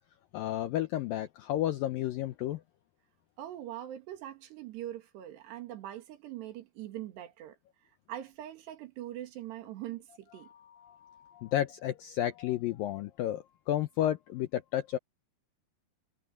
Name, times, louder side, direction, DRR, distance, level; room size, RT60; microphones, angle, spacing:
voice 1, 0.3-2.6 10.4-15.0, left 12 dB, 80° left, 2.1 m, -32 dB
voice 2, 3.4-7.6 7.8-10.5, right 13 dB, 80° right, 4.1 m, -42 dB
omnidirectional pair, 4.9 m